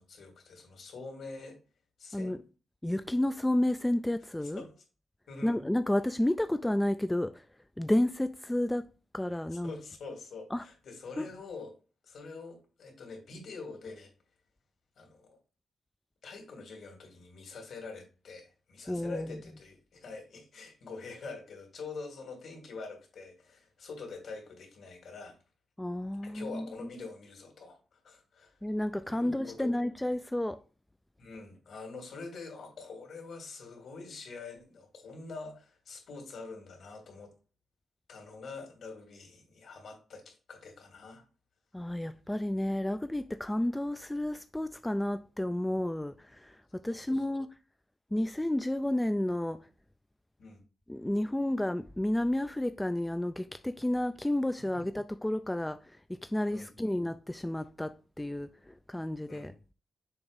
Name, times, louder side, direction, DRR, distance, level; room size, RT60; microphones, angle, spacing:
voice 1, 0.0-1.6 2.0-2.4 4.6-4.7 5.3-5.6 9.6-11.7 12.0-14.1 15.0-15.4 16.2-25.4 26.2-28.6 29.0-29.7 31.2-37.3 38.1-41.2 46.9-47.4 50.4-50.6 54.7-54.8 56.5-56.9 59.3-59.5, left 4 dB, 65° left, 2.8 m, -45 dB
voice 2, 2.8-4.6 5.4-7.5 7.8-8.9 9.1-9.7 10.5-10.6 11.2-11.3 18.9-19.4 25.8-26.9 28.6-30.6 41.7-47.5 48.1-49.7 50.9-59.5, left 1 dB, 10° left, 0.3 m, -31 dB
7.0 x 3.0 x 5.2 m
cardioid pair, 120°, 0 cm